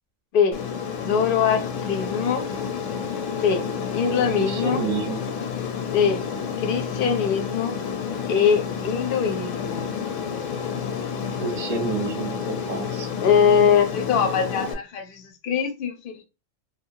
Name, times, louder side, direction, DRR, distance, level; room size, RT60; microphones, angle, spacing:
Aircraft, 0.5-14.7, left 7 dB, 80° left, 0.9 m, -30 dB
voice 1, 1.0-2.5 3.4-3.6 3.9-4.8 5.9-6.2 6.6-7.8 8.3-9.9 13.2-16.2, left 7 dB, 55° left, 0.7 m, -22 dB
voice 2, 4.2-5.2 11.4-13.1, right 4 dB, 40° right, 0.7 m, -29 dB
2.9 x 2.3 x 2.7 m
omnidirectional pair, 1.3 m